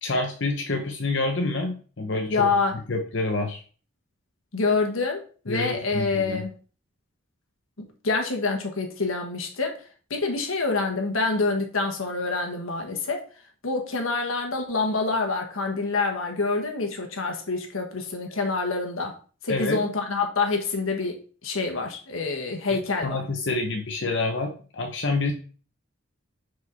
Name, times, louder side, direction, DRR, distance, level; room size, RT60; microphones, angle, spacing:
voice 1, 0.0-2.5 2.9-3.6 5.5-6.4 19.5-19.8 22.7-25.3, left 2 dB, 60° left, 2 dB, 0.9 m, -27 dB
voice 2, 2.3-2.7 4.5-6.6 7.8-13.2 13.6-19.2 19.4-23.2, left 3 dB, 90° left, 3 dB, 1.5 m, -27 dB
6.5 x 4.8 x 4.1 m, 0.39 s
head